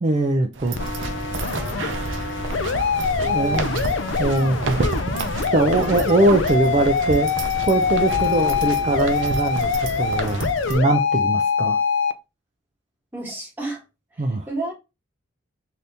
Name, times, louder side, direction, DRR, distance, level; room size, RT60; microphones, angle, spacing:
voice 1, 0.0-1.0 3.3-3.7 4.2-4.8 5.5-7.3 7.6-9.7 10.0-10.4 10.7-11.8 14.2-14.4, right 2 dB, 35° right, 0.3 m, -21 dB
sound 1, 0.5-10.8, right 2 dB, 80° right, 0.6 m, -29 dB
sound 2, 0.7-12.1, left 6 dB, 75° left, 0.4 m, -24 dB
voice 2, 3.2-3.7 13.1-13.8 14.1-14.7, right 2 dB, 10° right, 1.2 m, -32 dB
3.4 x 2.7 x 2.6 m
head